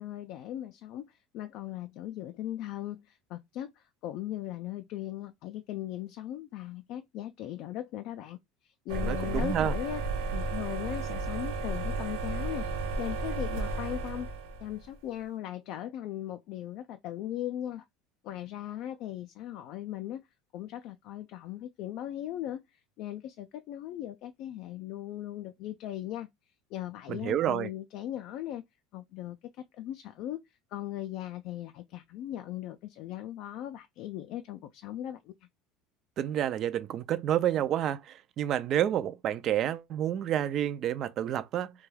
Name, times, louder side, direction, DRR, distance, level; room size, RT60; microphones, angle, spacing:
voice 1, 0.0-8.4 8.6-10.0 10.3-12.7 13.0-14.3 14.6-17.8 18.2-20.2 20.5-22.6 23.0-26.3 26.7-28.6 28.9-29.4 29.7-30.4 30.7-35.3, left 12 dB, 55° left, 0.3 m, -38 dB
voice 2, 8.9-9.7 27.1-27.7 36.2-41.7, right 11 dB, 40° right, 0.3 m, -29 dB
sound 1, 8.9-14.8, right 3 dB, 85° right, 0.8 m, -33 dB
2.3 x 2.2 x 3.2 m
cardioid pair, 140°, 0 cm